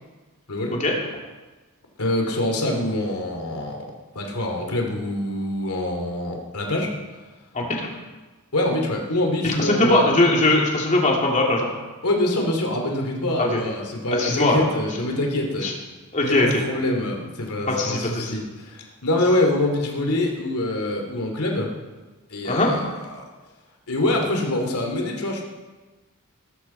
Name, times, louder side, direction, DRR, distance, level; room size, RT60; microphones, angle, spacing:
voice 1, 2.0-6.9 8.5-10.0 12.0-15.7 16.2-21.7 22.3-23.2 23.9-25.4, left 1 dB, 90° left, 1 dB, 2.6 m, -25 dB
voice 2, 9.4-11.7 13.4-13.6 14.1-14.7 15.6-15.7 16.1-16.6 17.7-18.4 22.4-22.7, left 2 dB, 35° left, -2 dB, 2.9 m, -20 dB
19.0 x 13.5 x 4.4 m, 1.2 s
head